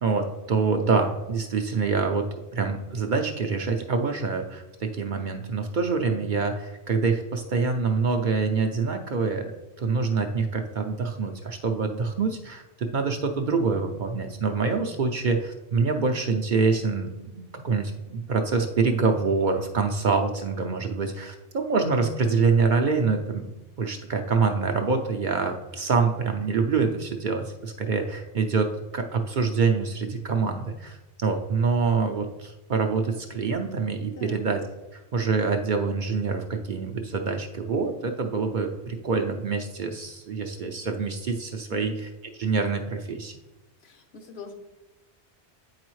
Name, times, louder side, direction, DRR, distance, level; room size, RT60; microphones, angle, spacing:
voice 1, 0.0-9.5 9.8-34.6 34.9-41.9 42.4-43.3, right 4 dB, 55° right, 5 dB, 0.6 m, -26 dB
voice 2, 34.1-34.5 41.7-42.0 43.8-44.5, left 3 dB, 65° left, 6 dB, 1.1 m, -43 dB
8.3 x 4.8 x 3.1 m, 1.0 s
omnidirectional pair, 1.2 m